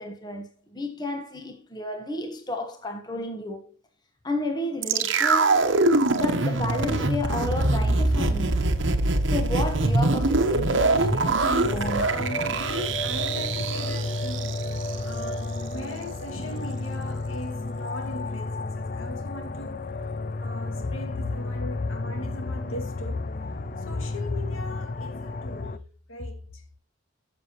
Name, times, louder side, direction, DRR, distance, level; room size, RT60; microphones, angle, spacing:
voice 1, 0.0-3.8 4.2-5.7 6.1-8.7 9.3-12.1, left 1 dB, 20° left, 1.3 m, -32 dB
sound 1, 4.8-15.0 15.2-15.3, right 2 dB, 65° right, 1.1 m, -23 dB
voice 2, 11.3-14.6 15.0-20.1 20.4-26.6, left 2 dB, 85° left, 2.4 m, -37 dB
sound 2, 11.6-25.8, left 2 dB, 40° left, 0.5 m, -32 dB
13.0 x 7.1 x 3.1 m
head